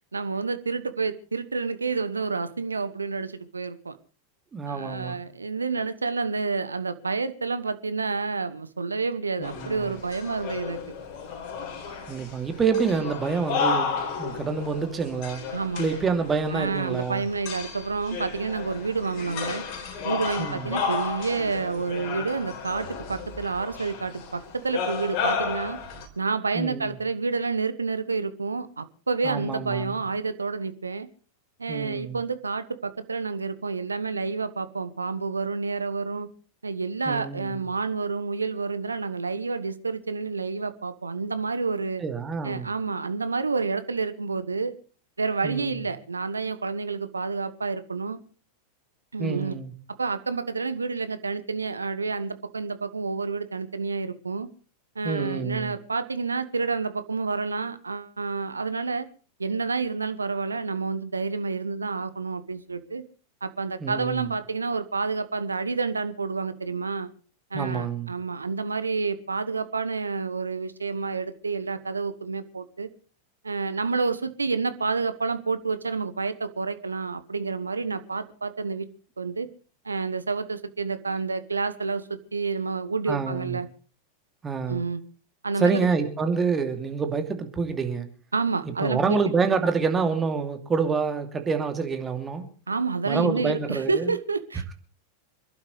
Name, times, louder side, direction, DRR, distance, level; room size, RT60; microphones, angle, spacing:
voice 1, 0.1-3.9 4.6-10.8 15.5-16.0 16.5-19.6 20.0-25.8 26.2-31.1 31.6-36.3 36.6-42.0 42.4-44.7 45.2-48.2 49.1-49.6 50.0-54.5 54.9-59.1 59.4-63.0 63.4-67.1 67.5-72.9 73.4-78.9 79.2-79.5 79.8-83.7 84.7-85.0 85.4-85.9 88.3-89.2 92.7-94.7, right 4 dB, 75° right, 12 dB, 1.2 m, -29 dB
voice 2, 4.5-5.2 9.4-9.9 12.1-15.4 15.8-17.2 20.4-20.7 26.5-27.0 29.2-30.0 31.7-32.2 37.1-37.7 42.0-42.7 45.4-45.8 49.2-49.7 55.0-55.8 63.8-64.3 67.5-68.1 83.1-83.6 84.4-84.8 85.6-88.1 88.6-92.5 93.0-94.1, right 5 dB, 20° right, 6 dB, 2.7 m, -27 dB
sound 1, 9.4-26.1, left 5 dB, 45° left, 3.6 m, -33 dB
26.5 x 11.5 x 3.3 m, 0.39 s
figure-of-eight pair, 90°, 0 cm